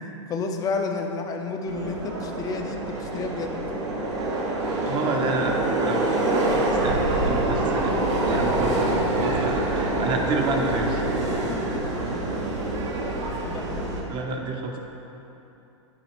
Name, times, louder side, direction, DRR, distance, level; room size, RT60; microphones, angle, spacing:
voice 1, 0.3-3.5 8.7-9.1 11.5-11.6 13.4-14.1, left 4 dB, 25° left, 3 dB, 0.6 m, -31 dB
Subway metro underground, 1.7-14.0, right 2 dB, 70° right, 1.4 m, -25 dB
voice 2, 4.8-8.0 8.2-11.0 13.2-13.7 14.1-14.8, right 3 dB, 30° right, 2 dB, 0.9 m, -30 dB
9.8 x 4.2 x 4.5 m, 3.0 s
hypercardioid pair, 125°, 16 cm